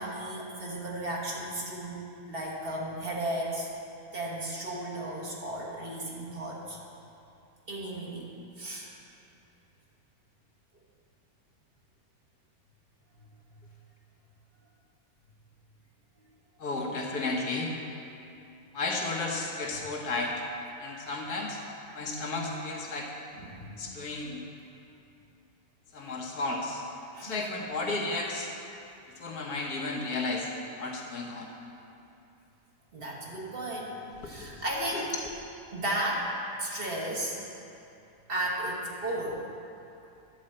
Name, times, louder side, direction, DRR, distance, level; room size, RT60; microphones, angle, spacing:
voice 1, 0.0-2.0 2.3-3.7 4.1-6.8 7.7-8.3 8.6-8.9 23.3-23.8 27.1-27.5 32.9-34.0 34.2-35.1 35.7-36.3 36.6-37.4 38.3-39.4, right 1 dB, 40° right, -3 dB, 1.4 m, -34 dB
voice 2, 16.6-17.7 18.7-20.3 20.8-21.6 21.9-23.1 23.8-24.4 25.9-26.8 27.2-28.5 29.1-30.5 30.8-31.5 34.2-34.6 34.9-35.3, left 3 dB, 85° left, -1 dB, 1.6 m, -33 dB
10.5 x 4.3 x 7.6 m, 2.8 s
omnidirectional pair, 1.6 m